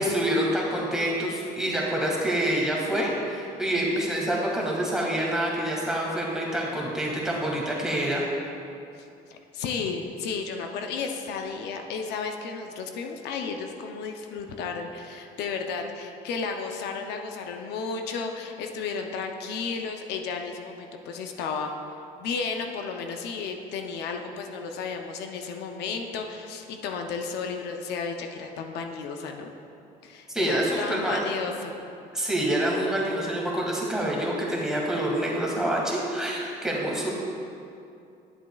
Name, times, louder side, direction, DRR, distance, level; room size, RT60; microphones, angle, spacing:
voice 1, 0.0-8.2 30.3-31.2 32.1-37.1, right 1 dB, 5° right, -4 dB, 1.7 m, -27 dB
voice 2, 9.0-21.7 22.2-29.5 30.0-31.8, left 5 dB, 80° left, 4 dB, 0.6 m, -33 dB
11.0 x 7.3 x 2.3 m, 2.6 s
cardioid pair, 110°, 17 cm